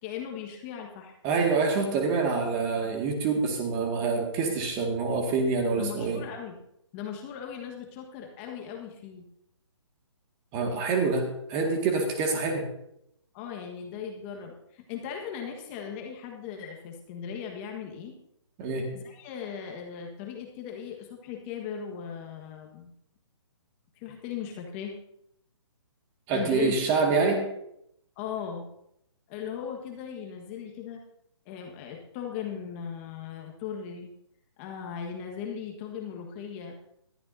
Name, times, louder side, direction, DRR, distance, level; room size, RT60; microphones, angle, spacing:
voice 1, 0.0-1.1 5.8-6.6 6.9-9.3 13.3-18.1 18.9-22.9 24.0-25.0 26.3-26.8 28.2-28.7 29.3-31.0 31.4-34.1 34.6-36.8, left 8 dB, 25° left, 2 dB, 1.5 m, -38 dB
voice 2, 1.2-6.2 10.5-12.6 18.6-18.9 26.3-27.4, right 4 dB, 25° right, 3 dB, 2.1 m, -26 dB
20.0 x 12.0 x 2.8 m, 0.78 s
hypercardioid pair, 150°, 15 cm